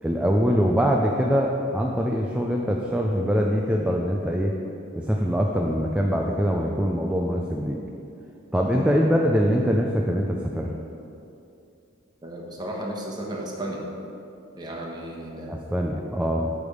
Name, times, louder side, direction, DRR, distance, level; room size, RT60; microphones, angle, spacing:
voice 1, 0.0-4.5 5.0-7.8 8.5-10.7 15.5-16.5, equal, 5° right, 0 dB, 0.4 m, -23 dB
voice 2, 12.2-13.9 14.5-15.5, right 1 dB, 20° right, -2 dB, 1.1 m, -34 dB
8.4 x 3.5 x 6.5 m, 2.7 s
head